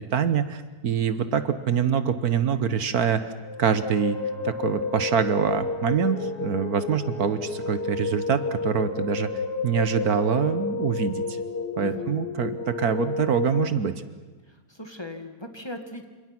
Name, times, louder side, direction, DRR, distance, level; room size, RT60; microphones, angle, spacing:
voice 1, 0.0-3.3 3.6-4.2 4.4-9.3 9.6-11.2 11.8-13.9, right 7 dB, 65° right, 11 dB, 1.5 m, -25 dB
sound 1, 3.4-13.7, left 4 dB, 85° left, 2.2 m, -31 dB
Brass instrument, 3.8-8.1, right 1 dB, ahead, 3.8 m, -52 dB
voice 2, 11.8-12.2 14.5-16.0, left 1 dB, 15° left, 5 dB, 2.0 m, -39 dB
28.5 x 26.5 x 6.0 m, 1.3 s
omnidirectional pair, 1.7 m